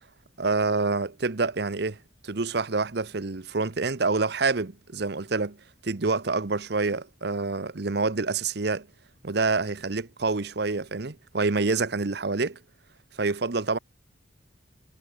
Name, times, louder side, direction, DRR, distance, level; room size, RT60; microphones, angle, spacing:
voice 1, 0.4-2.0 2.2-5.6 5.8-8.9 9.2-12.6 13.2-13.8, right 3 dB, 60° right, 0.9 m, -27 dB
head